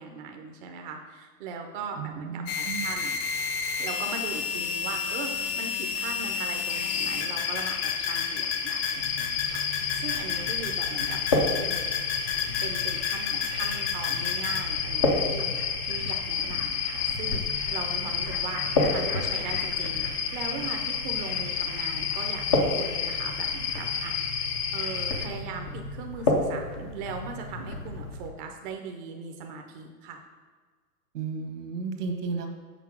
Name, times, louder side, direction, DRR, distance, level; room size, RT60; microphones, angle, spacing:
voice 1, 0.0-3.1 3.8-11.8 12.5-24.1 24.7-30.2, right 5 dB, 30° right, 3 dB, 0.5 m, -39 dB
voice 2, 1.9-2.9 31.1-32.5, right 4 dB, 70° right, 4 dB, 1.4 m, -33 dB
sound 1, 2.5-14.6, left 6 dB, 35° left, 0.7 m, -32 dB
sound 2, 6.7-25.3, left 7 dB, 70° left, 1.0 m, -31 dB
sound 3, 8.9-28.3, left 2 dB, 20° left, 0.3 m, -32 dB
5.9 x 4.1 x 6.0 m, 1.5 s
hypercardioid pair, 135°, 48 cm